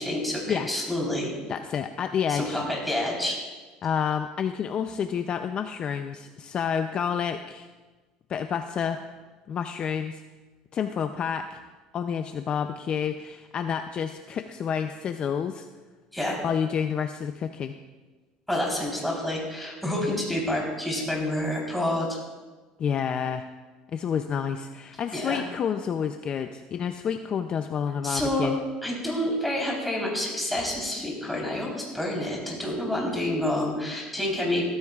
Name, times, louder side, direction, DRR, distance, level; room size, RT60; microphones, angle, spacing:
voice 1, 0.0-1.3 2.3-3.4 16.1-16.4 18.5-22.2 25.1-25.4 28.0-28.5 28.8-34.7, left 1 dB, ahead, -3 dB, 3.9 m, -28 dB
voice 2, 1.5-2.6 3.8-7.7 8.3-9.0 9.5-10.2 10.7-11.6 11.9-15.7 16.4-17.7 22.8-23.5 23.9-28.6, left 7 dB, 35° left, 8 dB, 0.5 m, -29 dB
16.0 x 14.0 x 2.4 m, 1.3 s
cardioid pair, 125°, 3 cm